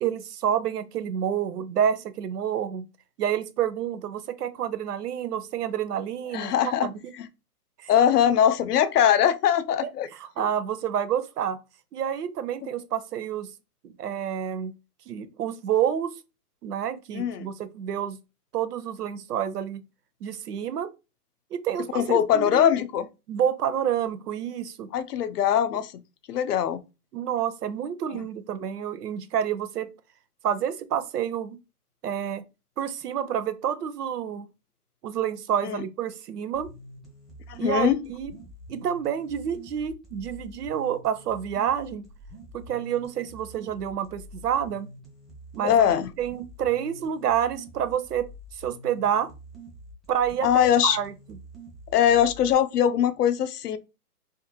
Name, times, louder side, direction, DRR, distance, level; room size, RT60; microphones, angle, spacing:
voice 1, 0.0-2.9 3.2-6.5 6.8-7.0 7.8-7.9 9.8-11.6 11.9-13.5 13.8-14.7 15.1-16.1 16.6-18.2 18.5-19.8 20.2-20.9 21.5-22.7 23.3-24.9 27.1-29.9 30.4-31.6 32.0-32.4 32.8-34.5 35.0-36.7 37.6-38.3 38.7-42.1 42.5-44.9 45.5-45.9 46.2-48.3 48.5-49.3 50.1-51.1, right 9 dB, 85° right, 0.6 m, -28 dB
voice 2, 6.3-6.9 7.9-10.1 17.1-17.5 21.9-23.1 24.9-25.9 26.3-26.8 28.1-28.2 35.6-35.8 37.5-38.0 45.6-46.1 50.4-51.0 51.9-53.8, left 9 dB, 85° left, 0.5 m, -21 dB
sound 1, 36.5-52.5, equal, ahead, 0.3 m, -46 dB
2.5 x 2.4 x 2.7 m
hypercardioid pair, 170°, 46 cm